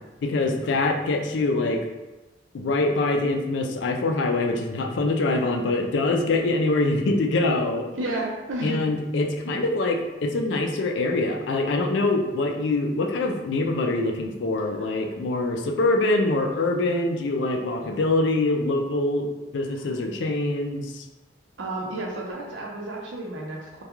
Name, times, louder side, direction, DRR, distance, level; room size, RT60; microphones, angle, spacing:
voice 1, 0.2-1.9 2.5-7.9 8.6-21.0, left 2 dB, 70° left, 3 dB, 0.4 m, -24 dB
voice 2, 7.9-8.8 14.7-15.1 19.7-19.9 21.6-23.8, right 2 dB, 85° right, -2 dB, 0.7 m, -32 dB
2.2 x 2.2 x 2.9 m, 1.1 s
head